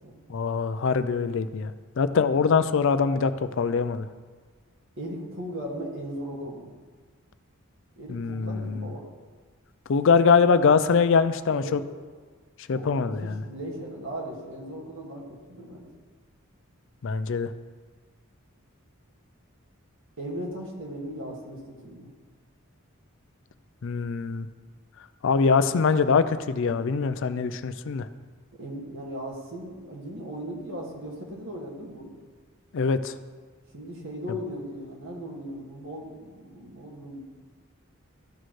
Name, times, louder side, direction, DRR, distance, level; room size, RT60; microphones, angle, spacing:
voice 1, 0.3-1.7 2.0-4.1 8.1-8.9 9.9-11.8 12.7-13.4 17.0-17.5 23.8-24.5 25.2-28.1 32.7-33.1, left 5 dB, 60° left, 12 dB, 0.4 m, -23 dB
voice 2, 5.0-6.7 8.0-9.1 11.5-11.8 12.7-15.9 20.2-22.1 28.6-32.1 33.7-37.2, equal, 60° right, -2 dB, 2.0 m, -37 dB
14.0 x 6.2 x 3.2 m, 1.5 s
head